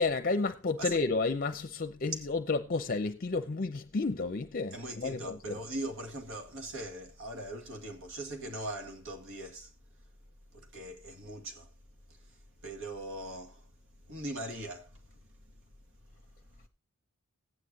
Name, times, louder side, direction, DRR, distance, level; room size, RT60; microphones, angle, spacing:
voice 1, 0.0-5.6, left 3 dB, 40° left, 0.7 m, -31 dB
voice 2, 4.7-9.7 10.5-11.7 12.1-12.2 12.6-13.7 14.1-15.0, right 1 dB, 60° right, 2.1 m, -40 dB
15.0 x 9.9 x 2.8 m
head